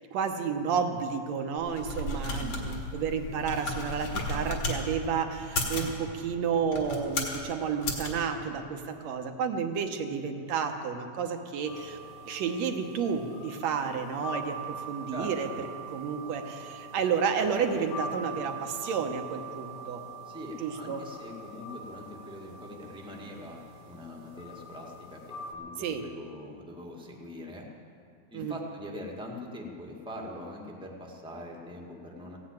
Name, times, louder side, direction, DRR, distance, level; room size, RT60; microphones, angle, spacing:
voice 1, 0.1-12.0 12.3-15.5 15.9-20.0 20.6-21.0 25.8-26.0 28.3-28.6, right 6 dB, 70° right, 5 dB, 2.1 m, -31 dB
sound 1, 1.6-4.8 5.4-5.9 6.6-7.4 7.8-8.1, left 2 dB, 65° left, 3.2 m, -33 dB
voice 2, 2.3-2.7 15.1-15.6 20.2-27.7 28.3-32.4, left 1 dB, 5° right, -1 dB, 0.8 m, -43 dB
sound 2, 11.7-25.5, right 2 dB, 85° left, 2.7 m, -43 dB
16.0 x 9.6 x 8.9 m, 2.5 s
omnidirectional pair, 3.3 m